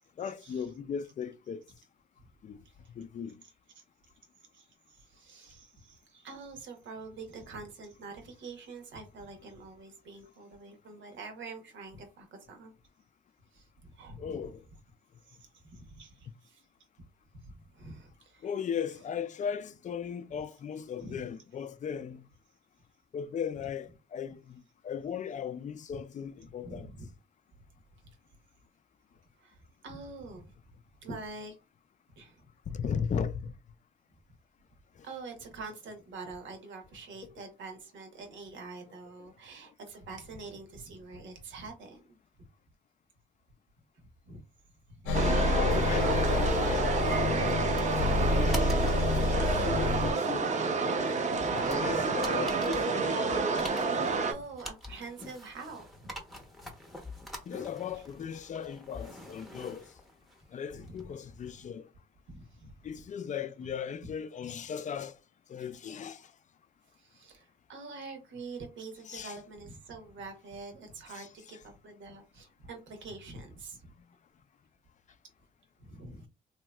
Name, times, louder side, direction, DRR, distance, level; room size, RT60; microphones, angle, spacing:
voice 1, 0.2-1.6 2.4-2.6 2.9-3.4 14.2-14.6 18.4-22.3 23.1-26.9 32.7-33.5 35.0-35.1 39.2-39.3 45.8-47.6 48.3-50.5 51.5-52.8 57.5-59.9 60.5-61.9 62.8-65.2 65.5-66.3 69.1-69.4 71.1-71.3, left 7 dB, 40° left, 0.4 m, -37 dB
voice 2, 4.5-12.7 13.5-14.4 15.3-16.6 17.4-18.5 21.0-21.2 25.9-26.0 26.4-27.1 29.4-29.6 29.8-30.5 31.0-31.6 32.2-32.4 35.0-42.0 44.3-44.4 44.9-45.3 49.8-50.0 51.5-52.1 54.3-56.1 56.6-56.7 57.9-58.0 60.7-60.9 62.3-63.0 67.0-73.9 75.8-76.3, right 3 dB, 70° right, 1.1 m, -46 dB
sound 1, 45.1-50.1, left 2 dB, 85° left, 0.8 m, -28 dB
sound 2, 45.1-54.3, right 4 dB, 35° right, 0.6 m, -29 dB
sound 3, 45.7-61.5, left 1 dB, ahead, 0.8 m, -47 dB
3.1 x 2.8 x 2.2 m
cardioid pair, 90°, 20 cm